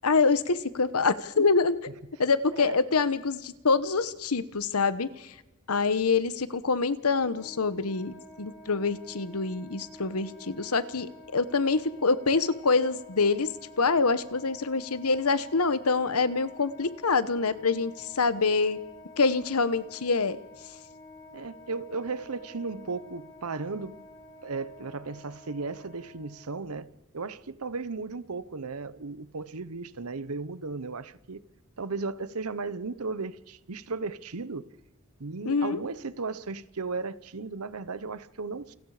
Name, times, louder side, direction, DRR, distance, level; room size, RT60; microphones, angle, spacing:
voice 1, 0.0-1.8 2.2-5.3 5.7-13.5 13.8-18.8 19.2-20.4 35.4-35.8, left 4 dB, 90° left, 1.1 m, -26 dB
Wind instrument woodwind instrument, 7.1-26.6, left 2 dB, 15° left, 4.5 m, -50 dB
voice 2, 21.3-24.0 24.4-26.9 27.1-31.4 31.8-34.7 35.2-38.7, right 4 dB, 90° right, 1.0 m, -35 dB
28.5 x 20.0 x 5.0 m
head